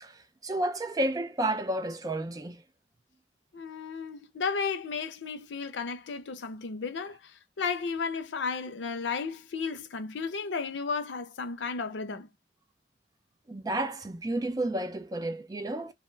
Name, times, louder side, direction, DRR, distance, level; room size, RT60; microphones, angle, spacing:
voice 1, 0.0-2.6 13.5-15.9, right 1 dB, 20° right, 0.3 m, -31 dB
voice 2, 3.5-12.3, left 5 dB, 85° left, 0.5 m, -34 dB
2.5 x 2.2 x 3.1 m
head